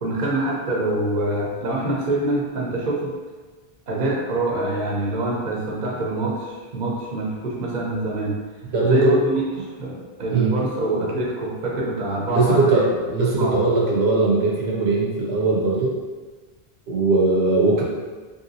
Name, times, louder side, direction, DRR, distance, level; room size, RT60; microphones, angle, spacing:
voice 1, 0.0-3.1 3.9-8.4 8.8-12.8 13.3-13.6, right 2 dB, 55° right, -3 dB, 0.8 m, -25 dB
voice 2, 8.7-9.2 10.3-10.5 12.3-16.0 16.9-17.8, right 3 dB, 85° right, -3 dB, 1.0 m, -20 dB
3.4 x 2.7 x 2.6 m, 1.3 s
omnidirectional pair, 1.0 m